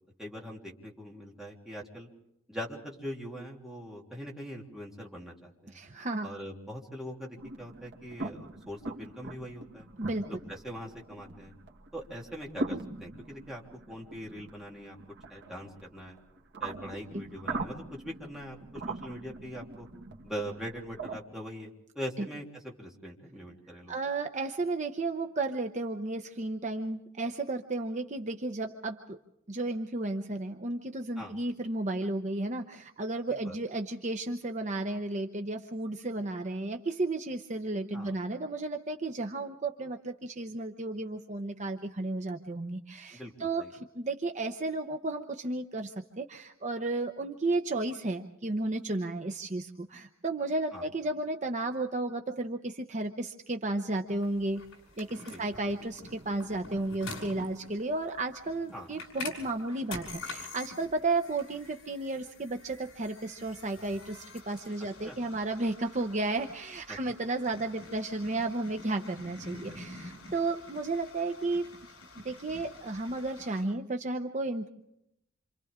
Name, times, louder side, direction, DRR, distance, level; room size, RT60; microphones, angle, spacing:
voice 1, 0.2-2.1 2.5-5.8 6.2-9.9 10.3-11.5 11.9-13.6 13.9-15.0 15.3-16.2 16.6-19.9 20.2-23.9 31.2-31.3 33.3-33.5 37.9-38.1 43.1-43.7 50.7-50.8 55.3-55.4 58.7-58.9 59.2-59.3 65.0-65.2 66.9-67.0 69.7-69.8, equal, ahead, -3 dB, 3.3 m, -42 dB
voice 2, 5.7-6.3 10.0-10.3 23.9-29.2 29.5-54.6 55.0-71.7 72.2-74.7, right 2 dB, 35° right, 5 dB, 0.9 m, -33 dB
sound 1, 7.4-21.2, right 2 dB, 60° right, 2.0 m, -42 dB
sound 2, 54.1-73.6, left 3 dB, 75° left, 6.2 m, -47 dB
27.5 x 27.0 x 3.7 m, 0.79 s
head